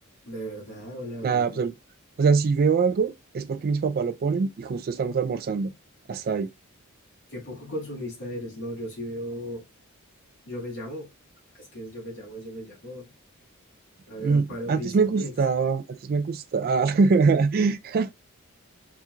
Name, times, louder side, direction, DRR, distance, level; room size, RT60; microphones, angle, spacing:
voice 1, 0.2-1.6 7.3-9.7 10.5-11.1 11.5-13.1 14.1-15.3, equal, 60° left, 2.3 m, -36 dB
voice 2, 1.2-1.7 2.2-5.7 6.1-6.5 14.2-18.1, right 4 dB, 45° right, 0.3 m, -23 dB
4.3 x 2.4 x 2.4 m
head